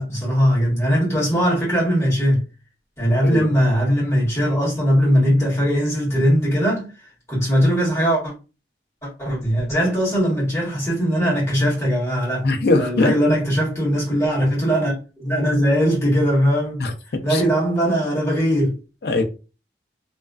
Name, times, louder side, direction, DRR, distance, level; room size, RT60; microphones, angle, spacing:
voice 1, 0.0-2.4 3.0-8.3 9.0-12.5 12.7-16.8 17.2-18.8, equal, 15° left, 1.2 m, -20 dB
voice 2, 12.4-13.1 16.8-17.4 19.0-19.2, left 2 dB, 60° left, 0.4 m, -21 dB
2.4 x 2.3 x 2.2 m
head